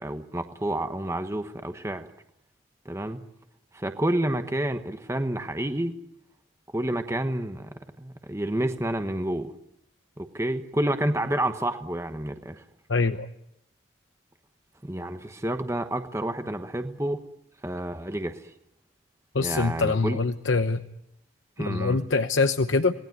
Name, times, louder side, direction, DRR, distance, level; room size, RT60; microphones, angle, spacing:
voice 1, 0.0-2.1 2.8-3.2 3.7-5.9 6.7-7.7 8.0-9.5 10.2-12.6 14.8-17.2 17.6-18.4 19.4-20.2 21.6-22.0, right 1 dB, 15° right, 7 dB, 1.1 m, -29 dB
voice 2, 12.9-13.3 19.3-20.8 21.6-22.9, left 3 dB, 70° left, 9 dB, 0.9 m, -24 dB
27.0 x 19.0 x 9.4 m, 0.81 s
head